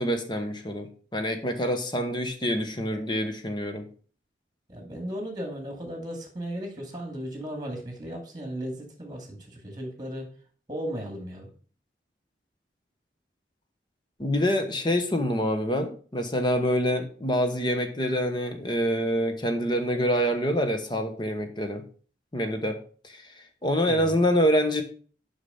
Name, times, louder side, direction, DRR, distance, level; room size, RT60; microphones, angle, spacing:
voice 1, 0.0-3.9 14.2-21.8 22.3-23.2 23.6-24.8, equal, 25° left, 6 dB, 1.1 m, -26 dB
voice 2, 4.7-10.3 10.7-11.5 23.9-24.2, equal, 20° right, 3 dB, 2.2 m, -36 dB
6.8 x 5.7 x 5.6 m, 0.41 s
head